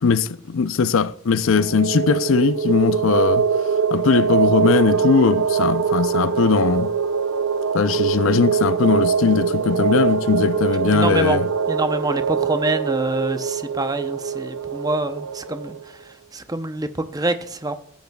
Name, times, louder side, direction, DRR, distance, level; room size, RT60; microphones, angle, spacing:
voice 1, 0.0-3.4 3.9-6.9 7.7-11.5, left 5 dB, 70° left, 0.5 m, -19 dB
sound 1, 1.5-15.8, right 6 dB, 70° right, 0.6 m, -23 dB
voice 2, 10.9-11.4 11.7-17.8, right 2 dB, 20° right, 0.6 m, -26 dB
16.5 x 9.3 x 2.3 m
head